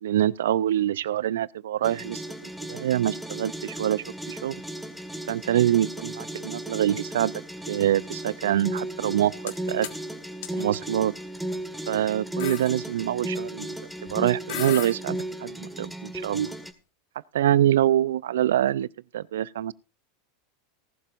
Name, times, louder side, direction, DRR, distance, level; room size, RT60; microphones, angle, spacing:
voice 1, 0.0-4.6 5.3-7.3 7.7-9.9 10.5-11.1 11.9-13.8 14.1-16.5 17.3-18.9 19.1-19.7, right 11 dB, 75° right, 0.5 m, -25 dB
sound 1, 1.8-16.7, right 1 dB, 5° right, 1.8 m, -35 dB
sound 2, 9.1-9.6 9.8-10.0 10.4-10.5 11.4-11.6 11.9-12.0 12.4-12.7 14.1-14.2 14.5-15.0, left 12 dB, 65° left, 1.6 m, -34 dB
18.5 x 11.5 x 2.6 m
hypercardioid pair, 90°, 0 cm